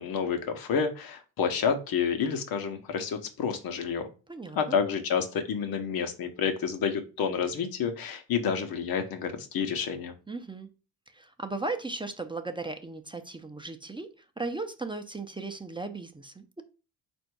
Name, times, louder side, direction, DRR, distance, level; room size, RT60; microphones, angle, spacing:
voice 1, 0.0-4.1 4.6-10.1, left 6 dB, 65° left, 1.0 m, -29 dB
voice 2, 4.3-4.8 10.3-10.7 11.1-16.6, right 3 dB, 15° right, 0.6 m, -37 dB
4.2 x 2.6 x 4.6 m
supercardioid pair, 60°, 38 cm